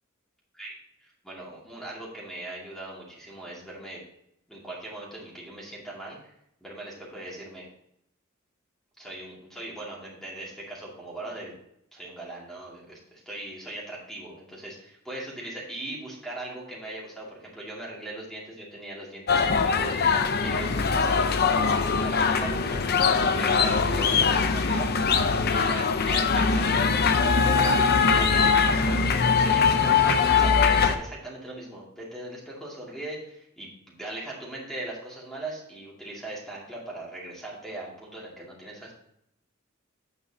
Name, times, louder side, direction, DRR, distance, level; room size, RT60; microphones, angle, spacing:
voice 1, 0.5-4.0 4.5-6.3 6.6-7.7 9.0-11.5 11.9-20.0 20.4-24.9 25.2-27.0 27.6-38.9, right 1 dB, ahead, -5 dB, 2.5 m, -39 dB
sound 1, 19.3-31.0, left 5 dB, 50° left, 0.7 m, -22 dB
9.1 x 6.9 x 2.9 m, 0.74 s
head